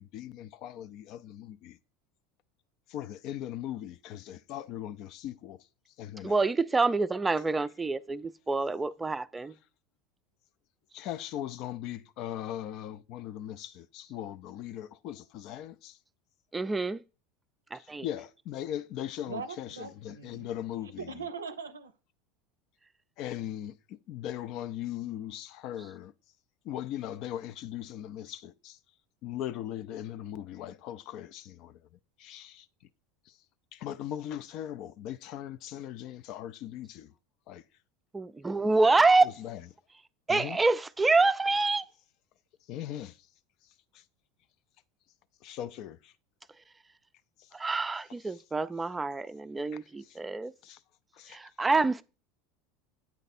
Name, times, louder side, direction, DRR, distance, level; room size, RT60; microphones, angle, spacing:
voice 1, 0.0-1.8 2.9-5.6 6.0-6.4 10.9-16.0 17.7-21.2 23.2-26.1 26.6-28.8 29.2-31.8 32.2-32.7 33.3-33.4 33.7-37.1 37.5-37.6 39.2-39.6 40.3-40.6 42.7-43.2 43.9-44.0 45.4-46.1 47.4-47.5 48.3-48.4 49.7-50.2 50.6-50.8 51.1-51.4, left 11 dB, 55° left, 0.4 m, -39 dB
voice 2, 6.2-9.5 16.5-17.0 17.7-18.1 38.1-39.3 40.3-41.8 47.5-50.5 51.3-52.0, right 3 dB, 15° right, 0.4 m, -26 dB
voice 3, 19.3-20.5 21.0-21.9, right 5 dB, 90° right, 0.5 m, -40 dB
8.2 x 3.3 x 4.1 m
hypercardioid pair, 80°, 0 cm